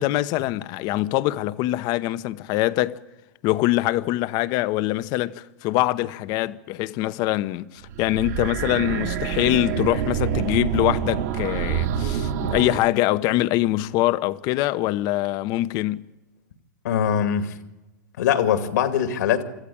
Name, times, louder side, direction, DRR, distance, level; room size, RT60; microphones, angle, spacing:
voice 1, 0.0-3.0 3.4-16.1, left 16 dB, 45° left, 0.9 m, -24 dB
sound 1, 7.8-12.8, right 9 dB, 60° right, 2.3 m, -26 dB
voice 2, 16.8-17.5 18.2-19.4, left 8 dB, 70° left, 2.3 m, -22 dB
25.5 x 14.0 x 8.6 m
hypercardioid pair, 120°, 10 cm